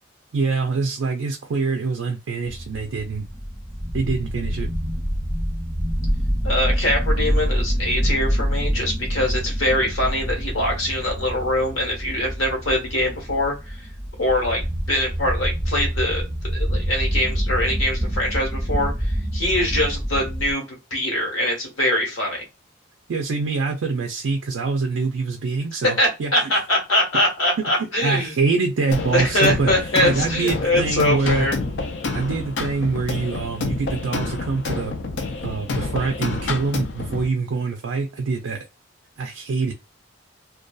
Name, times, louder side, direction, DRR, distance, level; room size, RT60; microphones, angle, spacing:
voice 1, 0.3-3.3 3.9-4.7 23.1-26.3 28.0-31.5 32.1-34.9 35.4-38.6 39.2-39.8, right 4 dB, 75° right, 3 dB, 0.4 m, -25 dB
sound 1, 2.5-20.5, equal, 5° left, 0.6 m, -26 dB
voice 2, 6.4-13.5 14.2-14.6 14.9-22.4 26.0-28.3 29.1-31.5, left 1 dB, 85° left, -1 dB, 1.2 m, -23 dB
sound 2, 28.9-37.3, left 3 dB, 60° left, 0.5 m, -28 dB
2.5 x 2.2 x 2.2 m, 0.26 s
head